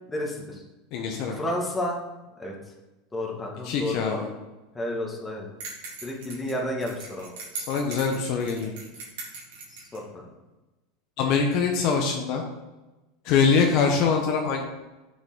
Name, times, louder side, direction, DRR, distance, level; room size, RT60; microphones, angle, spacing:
voice 1, 0.1-0.6 1.3-2.0 2.4-2.6 3.1-4.2 4.7-5.5 6.0-7.3 9.7-10.2, left 1 dB, 15° left, -1 dB, 1.9 m, -31 dB
voice 2, 0.9-1.4 3.6-4.3 7.5-8.7 11.2-12.4 13.2-14.6, left 5 dB, 60° left, 2 dB, 0.9 m, -23 dB
sound 1, 5.6-10.0, right 4 dB, 75° right, 2.4 m, -40 dB
6.5 x 6.0 x 3.8 m, 1.1 s
hypercardioid pair, 95°, 0 cm